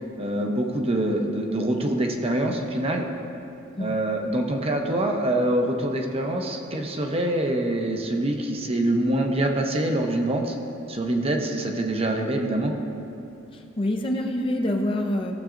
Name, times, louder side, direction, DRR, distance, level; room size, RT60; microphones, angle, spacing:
voice 1, 0.2-3.0 3.8-10.6 10.9-12.7, right 1 dB, 30° right, 2 dB, 0.7 m, -25 dB
voice 2, 13.5-15.3, left 1 dB, 30° left, 2 dB, 0.5 m, -26 dB
15.0 x 7.2 x 2.5 m, 2.6 s
head